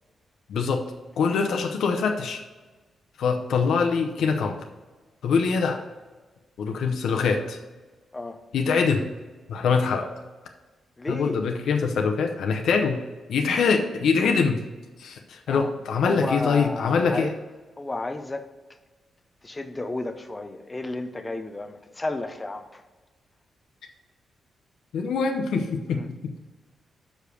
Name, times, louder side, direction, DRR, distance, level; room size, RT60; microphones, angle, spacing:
voice 1, 0.5-0.9 1.2-2.4 3.2-4.6 5.2-5.8 6.6-7.6 8.5-9.1 9.5-10.1 11.1-13.0 13.3-14.6 15.0-17.3 24.9-26.3, left 5 dB, 75° left, 4 dB, 0.7 m, -24 dB
voice 2, 11.0-11.4 15.5-15.7 16.0-17.3 17.8-18.5 19.4-22.8 25.9-26.1, left 2 dB, 15° left, 8 dB, 0.5 m, -32 dB
6.4 x 5.0 x 6.8 m, 1.3 s
wide cardioid pair, 165°, 0 cm